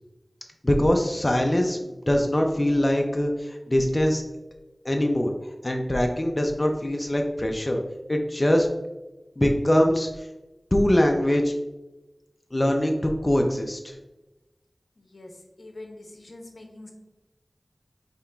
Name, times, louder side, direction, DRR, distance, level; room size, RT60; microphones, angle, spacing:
voice 1, 0.6-4.2 4.8-5.3 5.6-7.8 8.1-8.7 9.4-10.3 10.7-11.5 12.5-13.9, left 1 dB, 35° left, 2 dB, 0.4 m, -23 dB
voice 2, 15.0-15.3 15.6-16.9, left 2 dB, 80° left, 2 dB, 0.6 m, -44 dB
5.1 x 2.9 x 2.2 m, 1.0 s
wide cardioid pair, 50°, 0 cm